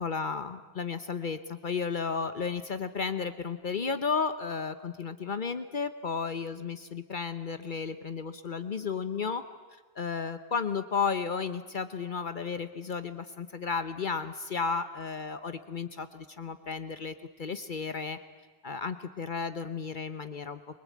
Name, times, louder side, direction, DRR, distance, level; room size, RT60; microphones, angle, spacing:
voice 1, 0.0-9.4 10.0-18.2 18.6-20.6, left 5 dB, 55° left, 11 dB, 1.0 m, -33 dB
23.5 x 20.5 x 8.5 m, 1.3 s
omnidirectional pair, 1.0 m